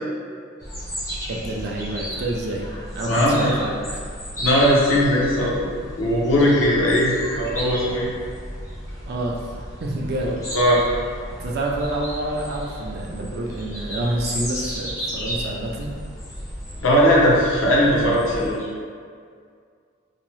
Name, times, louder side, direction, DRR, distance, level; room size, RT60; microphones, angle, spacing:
sound 1, 0.6-18.6, equal, 15° left, 0.4 m, -33 dB
voice 1, 1.3-2.7 2.9-4.0 9.1-9.4 9.8-10.4 11.4-15.9, right 1 dB, 50° right, -1 dB, 0.3 m, -27 dB
voice 2, 3.1-3.5 4.4-5.7 6.0-8.1 10.2-10.8 16.8-18.6, equal, 75° left, -5 dB, 0.6 m, -19 dB
2.7 x 2.0 x 3.0 m, 2.1 s
head